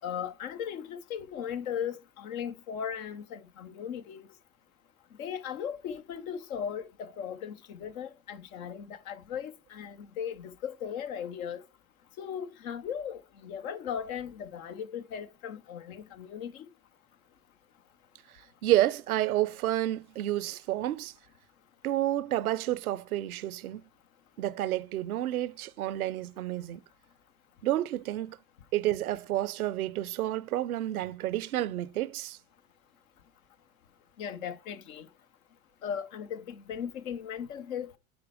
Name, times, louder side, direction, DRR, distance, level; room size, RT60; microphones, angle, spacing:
voice 1, 0.0-4.3 5.2-11.6 12.2-16.7 34.2-35.1 35.8-37.9, left 8 dB, 75° left, 1.0 m, -37 dB
voice 2, 18.6-21.1 21.8-23.8 24.4-26.8 27.6-28.4 28.7-32.4, right 14 dB, 85° right, 0.6 m, -30 dB
8.8 x 4.4 x 4.9 m
hypercardioid pair, 70°, 42 cm